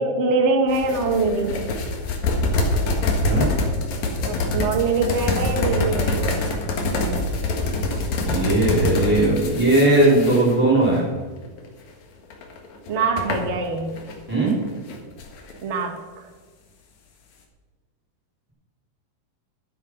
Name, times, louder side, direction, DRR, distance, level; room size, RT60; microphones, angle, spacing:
voice 1, 0.0-1.7 4.2-6.4 12.9-13.9 15.6-16.0, right 3 dB, 75° right, 4 dB, 0.6 m, -23 dB
sound 1, 0.7-11.0 11.4-11.7 12.3-14.2 14.5-15.6, left 2 dB, 60° left, 2.7 m, -25 dB
voice 2, 8.3-11.1 14.3-14.5, right 2 dB, 5° right, -9 dB, 3.0 m, -18 dB
12.0 x 10.0 x 5.8 m, 1.4 s
omnidirectional pair, 4.0 m